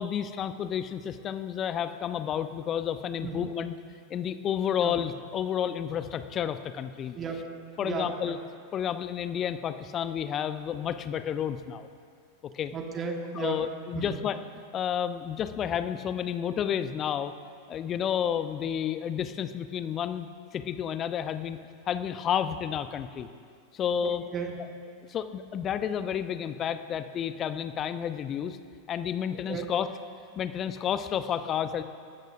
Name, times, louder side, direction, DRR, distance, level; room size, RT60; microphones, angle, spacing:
voice 1, 0.0-3.7 4.1-7.2 7.8-8.4 8.7-11.9 12.5-12.7 13.4-14.4 14.7-17.3 17.7-21.6 21.9-23.3 23.7-24.2 25.1-28.6 28.9-29.9 30.4-31.8, left 9 dB, 30° left, 11 dB, 0.7 m, -31 dB
voice 2, 7.1-7.5 7.8-8.4 12.7-13.6 13.9-14.2 24.0-24.8 29.3-29.7, right 5 dB, 25° right, 2 dB, 1.8 m, -35 dB
26.0 x 13.0 x 2.6 m, 2.2 s
figure-of-eight pair, 90°, 0 cm